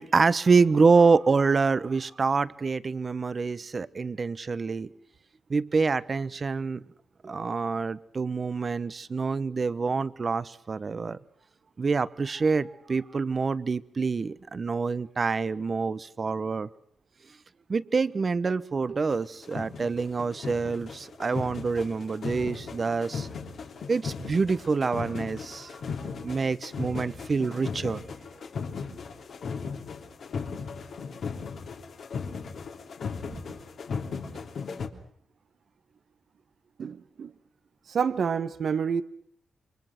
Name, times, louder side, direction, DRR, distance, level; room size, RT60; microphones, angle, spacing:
voice 1, 0.0-4.9 5.5-6.8 7.2-11.2 11.8-16.7 17.7-23.3 23.9-25.7 26.0-28.0, right 4 dB, 45° right, 1.2 m, -26 dB
sound 1, 19.1-19.2 19.4-34.9, left 5 dB, 70° left, 3.2 m, -37 dB
voice 2, 36.8-37.3 37.9-39.0, right 6 dB, 70° right, 1.3 m, -28 dB
28.5 x 24.0 x 6.1 m
cardioid pair, 70°, 0 cm